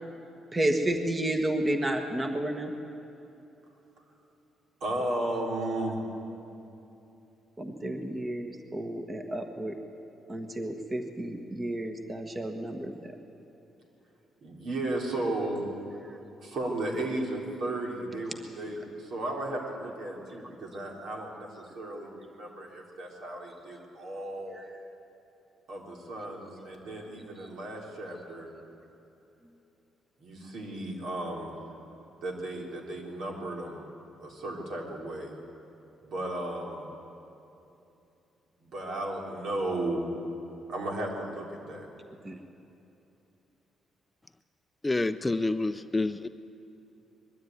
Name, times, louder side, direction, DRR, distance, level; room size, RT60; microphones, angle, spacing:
voice 1, 0.5-2.7 7.6-9.7 10.3-13.1 16.0-16.1 24.5-24.6 42.2-42.4, right 1 dB, 25° right, 5 dB, 1.4 m, -31 dB
voice 2, 4.8-6.0 14.4-15.6 16.4-24.6 25.7-28.5 30.2-31.6 32.2-33.8 34.2-35.3 36.0-36.9 38.6-40.1 40.7-41.9, right 1 dB, 70° right, 0 dB, 3.7 m, -34 dB
voice 3, 44.8-46.3, left 2 dB, 15° left, 11 dB, 0.5 m, -28 dB
21.5 x 13.0 x 9.4 m, 2.9 s
cardioid pair, 90°, 0 cm